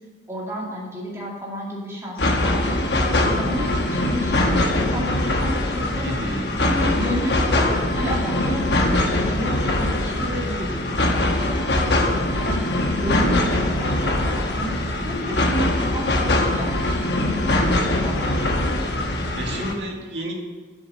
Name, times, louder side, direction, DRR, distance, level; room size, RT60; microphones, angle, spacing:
voice 1, 0.3-2.8 3.2-6.1 6.6-18.8, equal, 15° right, -5 dB, 2.2 m, -31 dB
sound 1, 2.2-19.7, left 1 dB, 65° left, 1.0 m, -22 dB
voice 2, 6.0-6.5 19.4-20.3, right 1 dB, 70° right, -1 dB, 1.9 m, -30 dB
7.6 x 6.5 x 7.5 m, 1.4 s
head